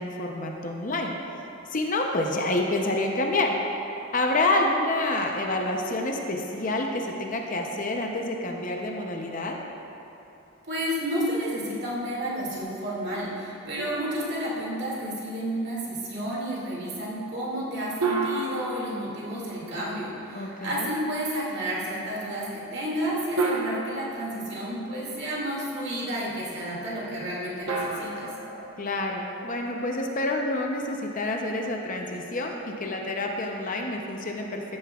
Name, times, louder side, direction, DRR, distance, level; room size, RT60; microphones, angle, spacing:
voice 1, 0.0-1.4 1.7-3.6 4.1-9.6 20.3-20.9 28.8-34.6, left 2 dB, 40° left, 1 dB, 0.7 m, -28 dB
voice 2, 10.7-28.3, equal, 50° right, -6 dB, 2.3 m, -31 dB
sound 1, 13.8-15.2 18.0-20.0 21.7-21.8 23.4-25.2 27.7-29.7, right 3 dB, 85° right, 1.1 m, -32 dB
14.0 x 9.6 x 2.4 m, 2.9 s
head